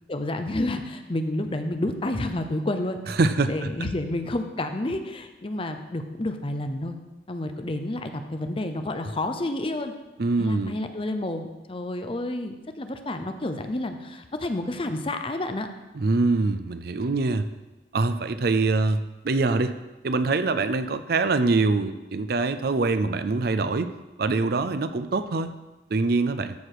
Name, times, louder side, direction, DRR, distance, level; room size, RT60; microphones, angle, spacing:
voice 1, 0.1-3.0 3.5-7.0 7.3-9.9 10.4-15.7, left 1 dB, 30° left, 7 dB, 0.7 m, -30 dB
voice 2, 3.2-3.7 10.2-10.8 15.9-17.5 17.9-19.7 20.0-23.9 24.2-25.5 25.9-26.5, right 3 dB, 60° right, 11 dB, 0.5 m, -24 dB
13.5 x 4.8 x 4.9 m, 1.1 s
head